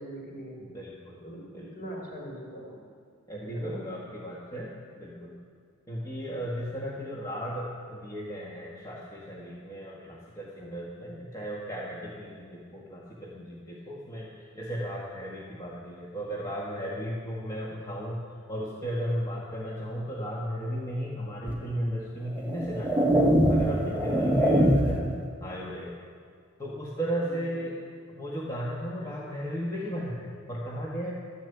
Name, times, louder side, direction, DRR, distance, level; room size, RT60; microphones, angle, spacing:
voice 1, 0.0-0.6 1.2-2.8 3.5-3.8 24.6-24.9 27.1-27.6, equal, 45° left, -2 dB, 4.4 m, -41 dB
voice 2, 0.6-1.2 1.5-1.9 3.3-5.4 5.9-18.2 18.5-25.1 25.4-25.9 26.6-31.1, equal, 15° left, -5 dB, 1.5 m, -35 dB
sound 1, 21.5-21.6 22.4-25.1, equal, 10° right, 1.0 m, -23 dB
12.5 x 10.5 x 8.3 m, 2.2 s
head